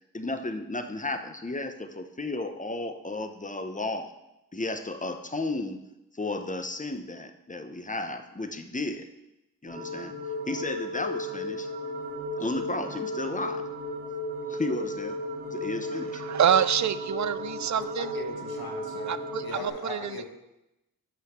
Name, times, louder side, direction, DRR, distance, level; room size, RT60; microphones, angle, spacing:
voice 1, 0.1-4.1 4.5-5.8 6.1-9.1 9.6-10.1 10.5-11.7 12.4-13.6 14.5-15.2 15.5-16.2, left 2 dB, 20° left, 7 dB, 0.8 m, -33 dB
sound 1, 9.7-19.7, left 1 dB, 75° right, 2.0 m, -35 dB
voice 2, 16.1-18.2 19.1-20.2, right 9 dB, 50° right, 15 dB, 0.4 m, -27 dB
voice 3, 17.7-19.2 19.4-20.2, left 4 dB, 70° left, 3 dB, 1.4 m, -39 dB
5.8 x 5.7 x 6.4 m, 0.91 s
cardioid pair, 55°, 38 cm